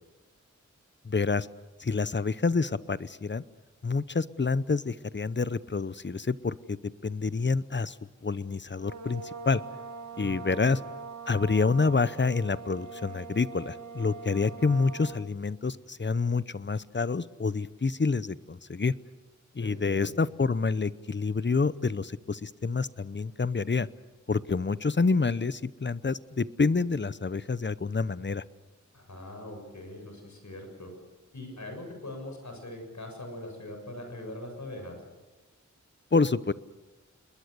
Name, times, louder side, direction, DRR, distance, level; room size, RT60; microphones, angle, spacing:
voice 1, 1.0-1.5 1.8-3.4 3.8-6.8 7.0-7.9 8.2-9.6 10.2-10.8 11.3-18.9 19.5-23.9 24.3-28.4 36.1-36.5, left 4 dB, 40° left, 17 dB, 0.8 m, -28 dB
sound 1, 8.7-15.3, right 4 dB, 70° right, 2.0 m, -42 dB
voice 2, 10.2-10.6 19.6-20.1 28.9-30.9 31.3-35.0, left 1 dB, 70° left, 4 dB, 7.3 m, -41 dB
28.5 x 21.5 x 6.8 m, 1.2 s
wide cardioid pair, 60°, 30 cm